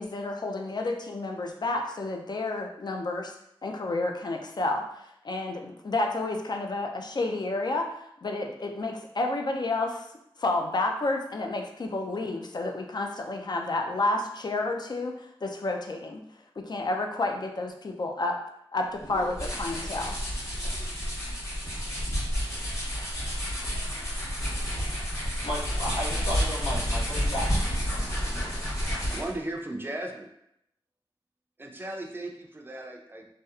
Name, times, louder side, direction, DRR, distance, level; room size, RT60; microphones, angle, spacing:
voice 1, 0.0-3.3 3.6-10.1 10.4-16.2 16.6-18.4 18.7-20.2, left 2 dB, 50° left, 3 dB, 0.4 m, -30 dB
sound 1, 19.0-29.4, equal, 30° left, 1.0 m, -30 dB
voice 2, 25.4-27.6, left 1 dB, 80° left, -5 dB, 0.7 m, -33 dB
voice 3, 29.1-30.3 31.6-33.3, right 1 dB, 20° right, 1 dB, 0.4 m, -36 dB
2.7 x 2.0 x 2.3 m, 0.77 s
cardioid pair, 50°, 10 cm